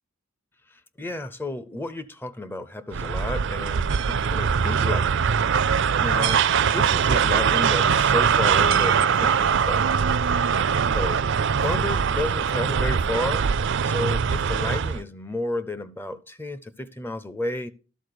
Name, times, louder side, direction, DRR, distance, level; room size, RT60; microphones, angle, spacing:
voice 1, 1.0-5.3 6.0-9.9 10.9-11.2 11.6-13.5 13.8-17.7, left 1 dB, 10° left, 0.5 m, -32 dB
sound 1, 2.9-15.0, right 6 dB, 60° right, 0.4 m, -22 dB
12.0 x 4.1 x 6.7 m
head